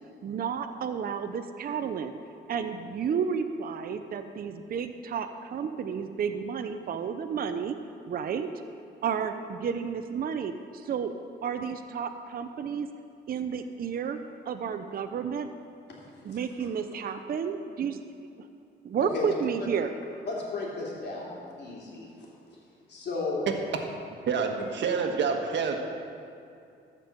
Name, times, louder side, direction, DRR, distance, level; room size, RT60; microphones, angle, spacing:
voice 1, 0.2-2.2 2.5-7.8 8.1-8.5 9.0-11.1 11.4-12.9 13.3-14.2 14.5-15.5 16.2-18.3 18.8-19.9, right 7 dB, 50° right, 8 dB, 0.6 m, -31 dB
voice 2, 16.3-16.7 19.0-19.3 20.2-22.3 22.9-23.5, left 3 dB, 60° left, -3 dB, 3.1 m, -34 dB
voice 3, 24.3-25.8, right 5 dB, 65° right, 4 dB, 1.3 m, -27 dB
13.0 x 5.3 x 7.3 m, 2.5 s
cardioid pair, 90°, 20 cm